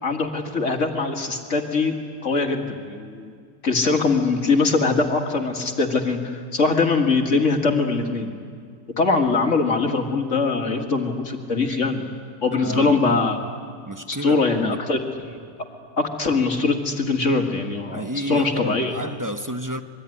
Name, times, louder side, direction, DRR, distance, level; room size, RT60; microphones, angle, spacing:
voice 1, 0.0-2.0 2.2-3.3 3.6-8.3 9.0-12.1 12.4-13.4 14.1-15.0 15.2-15.4 16.0-18.9, left 3 dB, 40° left, 4 dB, 2.3 m, -22 dB
voice 2, 12.6-13.2 13.9-14.8 17.9-19.8, right 1 dB, 20° right, 8 dB, 0.5 m, -31 dB
26.0 x 22.5 x 10.0 m, 2.1 s
omnidirectional pair, 2.0 m